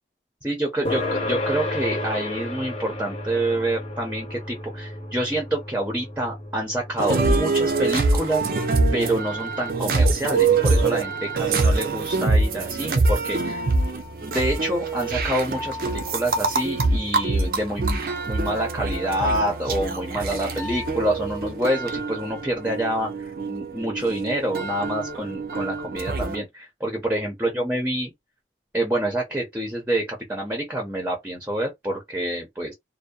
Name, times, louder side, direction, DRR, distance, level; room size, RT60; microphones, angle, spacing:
voice 1, 0.4-8.4 8.9-13.7 14.2-18.0 18.3-28.1 28.7-32.7, right 1 dB, 10° right, 0.6 m, -27 dB
sound 1, 0.8-15.8, left 1 dB, 35° left, 0.7 m, -35 dB
sound 2, 7.0-26.4, right 3 dB, 55° right, 0.5 m, -24 dB
2.6 x 2.0 x 2.3 m
head